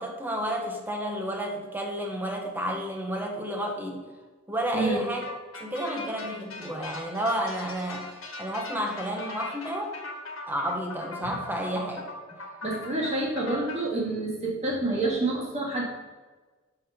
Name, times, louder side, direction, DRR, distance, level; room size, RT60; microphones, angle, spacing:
voice 1, 0.0-4.0 4.5-5.3 5.6-9.9 10.5-12.1, equal, 10° right, 1 dB, 1.0 m, -31 dB
voice 2, 4.7-5.0 12.6-15.8, right 2 dB, 30° right, -5 dB, 1.8 m, -28 dB
sound 1, 5.2-13.8, left 2 dB, 80° left, 1.4 m, -41 dB
5.8 x 4.9 x 5.6 m, 1.3 s
head